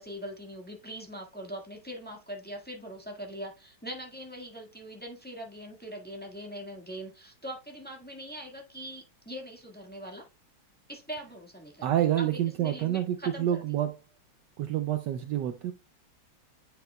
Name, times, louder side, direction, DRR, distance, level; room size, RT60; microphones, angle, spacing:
voice 1, 0.0-10.3 10.9-13.6, equal, 5° left, 1.4 m, -42 dB
voice 2, 11.8-14.0 14.6-15.7, right 11 dB, 75° right, 1.1 m, -28 dB
9.0 x 5.7 x 2.2 m
omnidirectional pair, 2.2 m